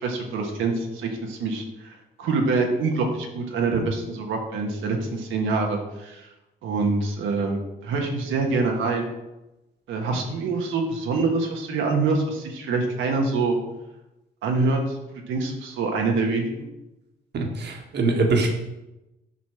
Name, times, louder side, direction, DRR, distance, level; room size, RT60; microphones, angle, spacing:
voice 1, 0.0-6.3 6.6-9.1 9.9-13.6 14.4-15.0 15.3-16.5, right 3 dB, 85° right, 1 dB, 1.5 m, -25 dB
voice 2, 17.3-18.5, right 3 dB, 60° right, 2 dB, 1.8 m, -23 dB
8.3 x 4.1 x 6.4 m, 0.98 s
cardioid pair, 90°, 20 cm